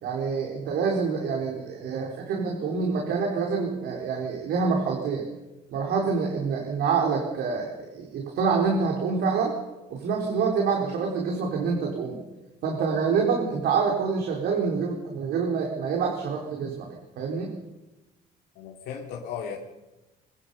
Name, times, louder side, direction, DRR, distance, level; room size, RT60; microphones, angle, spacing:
voice 1, 0.0-5.3 5.7-9.5 9.9-12.2 12.6-17.5, right 5 dB, 70° right, 0 dB, 4.2 m, -26 dB
voice 2, 18.5-19.6, left 7 dB, 90° left, -1 dB, 2.8 m, -35 dB
23.5 x 20.5 x 5.6 m, 1.1 s
cardioid pair, 110°, 17 cm